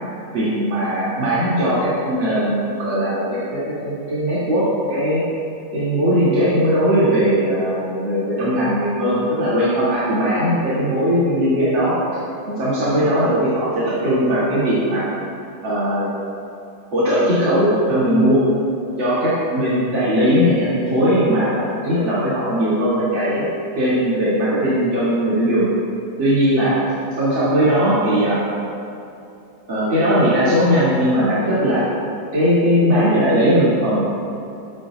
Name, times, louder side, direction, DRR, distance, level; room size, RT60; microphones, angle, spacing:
voice 1, 0.3-5.2 5.7-12.0 12.5-15.1 15.6-16.1 16.9-18.4 19.0-23.4 23.7-25.7 26.2-26.8 27.2-28.4 29.7-31.8 32.3-34.0, equal, 85° right, -11 dB, 3.4 m, -19 dB
21.5 x 11.0 x 2.4 m, 2.7 s
omnidirectional pair, 2.0 m